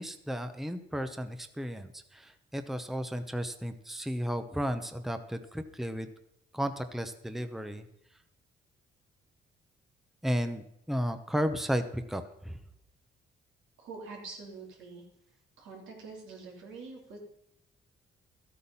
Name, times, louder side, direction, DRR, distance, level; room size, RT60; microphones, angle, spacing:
voice 1, 0.0-6.1 6.5-7.9 10.2-12.6, equal, ahead, 9 dB, 0.9 m, -34 dB
voice 2, 13.8-15.0 15.6-17.2, right 4 dB, 80° right, -1 dB, 3.4 m, -45 dB
13.5 x 8.4 x 5.6 m, 0.77 s
cardioid pair, 90°, 20 cm